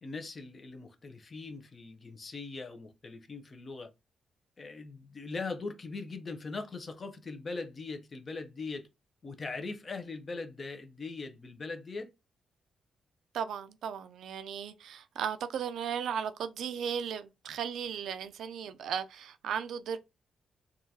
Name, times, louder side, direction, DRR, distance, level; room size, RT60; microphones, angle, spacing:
voice 1, 0.0-3.9 4.6-8.9 9.2-12.1, left 3 dB, 30° left, 0.6 m, -40 dB
voice 2, 13.3-20.0, right 7 dB, 75° right, 0.4 m, -36 dB
3.7 x 2.3 x 2.7 m
wide cardioid pair, 155°, 0 cm